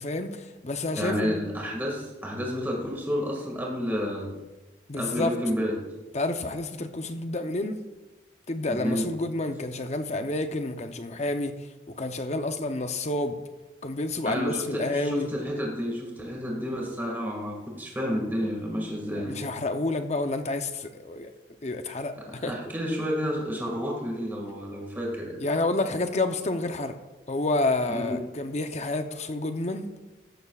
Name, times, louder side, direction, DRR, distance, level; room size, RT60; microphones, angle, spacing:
voice 1, 0.0-1.4 4.9-5.3 6.1-7.8 8.5-11.5 12.0-13.4 13.8-15.3 19.3-21.3 21.6-22.5 25.4-26.9 27.3-29.9, left 2 dB, 35° left, 7 dB, 0.7 m, -29 dB
voice 2, 1.0-4.3 4.9-5.8 8.7-9.1 14.2-19.4 22.3-25.4 27.9-28.2, equal, 10° right, -2 dB, 1.9 m, -30 dB
15.0 x 12.5 x 2.4 m, 1.1 s
head